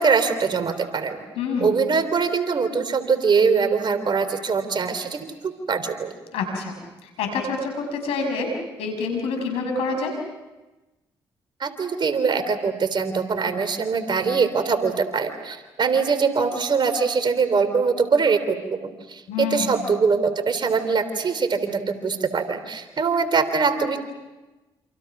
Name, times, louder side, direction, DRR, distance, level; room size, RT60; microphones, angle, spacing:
voice 1, 0.0-1.2 1.6-6.1 11.6-24.0, right 5 dB, 50° right, 9 dB, 3.4 m, -23 dB
voice 2, 1.4-1.8 6.3-6.8 7.0-8.5 8.8-10.2 19.3-19.8, left 4 dB, 85° left, 4 dB, 5.9 m, -27 dB
28.0 x 28.0 x 6.1 m, 1.1 s
supercardioid pair, 55°, 10 cm